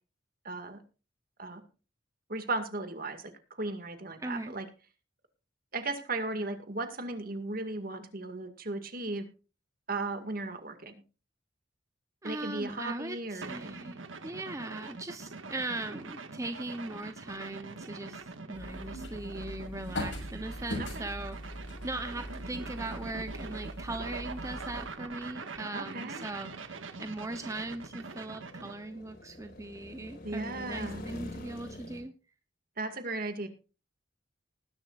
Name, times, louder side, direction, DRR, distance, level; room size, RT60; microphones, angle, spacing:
voice 1, 0.4-0.8 1.4-1.6 2.3-4.7 5.7-9.3 9.9-11.0 12.2-13.8 20.8-21.1 25.7-26.2 30.2-31.0 32.8-33.5, right 2 dB, 50° right, 8 dB, 2.1 m, -36 dB
voice 2, 4.2-4.5 12.2-32.1, right 2 dB, 15° right, 8 dB, 0.8 m, -39 dB
sound 1, 13.4-28.8, right 3 dB, 90° right, 1.6 m, -44 dB
sound 2, 16.3-32.0, left 1 dB, 50° left, 4.3 m, -51 dB
sound 3, 18.5-24.9, left 1 dB, 75° left, 6.2 m, -41 dB
19.5 x 11.0 x 2.5 m, 0.33 s
head